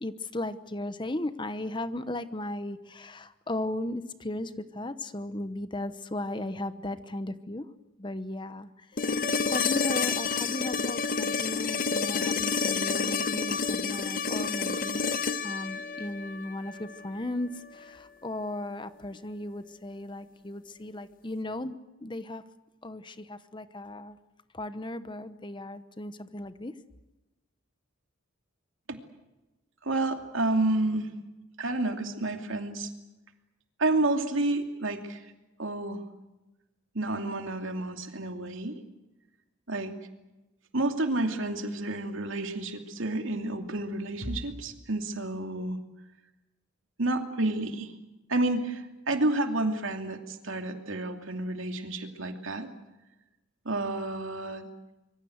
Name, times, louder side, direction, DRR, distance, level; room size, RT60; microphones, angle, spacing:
voice 1, 0.0-7.6 8.0-8.7 9.0-15.1 15.4-21.8 22.0-22.4 22.8-24.2 24.5-26.7, left 1 dB, 25° left, 12 dB, 0.9 m, -36 dB
sound 1, 9.0-17.0 19.1-19.2, left 5 dB, 40° left, 1.0 m, -29 dB
voice 2, 29.8-31.2 31.6-32.9 33.8-35.3 35.6-36.0 36.9-38.8 39.7-39.9 40.7-45.8 47.0-47.9 48.3-52.7 53.6-54.7, right 2 dB, 70° right, 5 dB, 2.7 m, -30 dB
25.5 x 23.0 x 8.0 m, 1.0 s
head